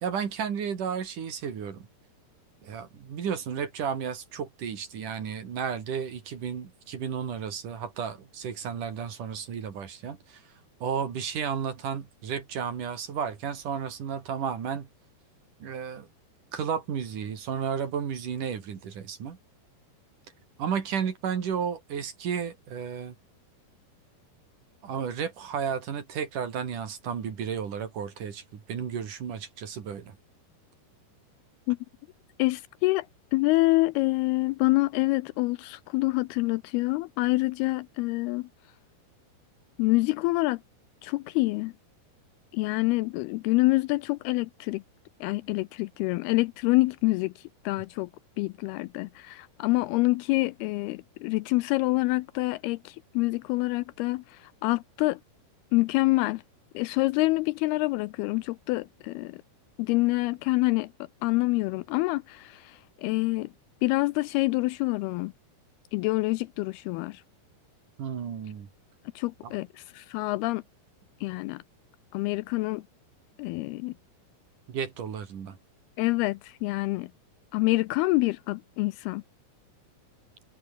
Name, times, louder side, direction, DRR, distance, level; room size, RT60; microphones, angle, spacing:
voice 1, 0.0-1.9 2.6-10.4 10.8-14.9 15.6-16.1 16.5-19.4 20.6-23.2 24.8-30.2 68.0-68.7 69.4-69.5 74.7-75.6, right 7 dB, 55° right, 3.9 m, -33 dB
voice 2, 32.4-33.1 33.3-38.5 39.8-40.6 41.0-41.7 42.5-44.8 45.2-47.3 47.7-48.1 48.4-55.2 55.7-56.4 56.7-59.4 59.8-60.9 61.2-63.5 63.8-65.3 65.9-67.2 69.2-70.6 71.2-71.6 72.1-72.8 73.4-73.9 76.0-77.1 77.5-79.2, left 22 dB, 85° left, 2.3 m, -26 dB
omnidirectional pair, 4.8 m